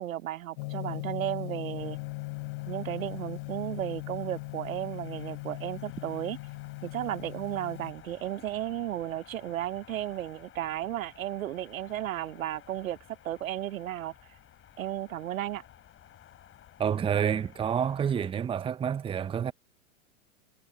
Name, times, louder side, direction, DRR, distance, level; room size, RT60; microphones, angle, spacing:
voice 1, 0.0-2.0 2.7-6.4 6.8-13.0 13.2-14.1 14.8-15.6, right 12 dB, 85° right, 1.0 m, -34 dB
Gong, 0.6-7.9, left 26 dB, 55° left, 2.7 m, -39 dB
sound 1, 1.8-18.3, left 11 dB, 30° left, 7.4 m, -54 dB
voice 2, 16.8-19.5, right 8 dB, 15° right, 0.7 m, -28 dB
hypercardioid pair, 120°, 40 cm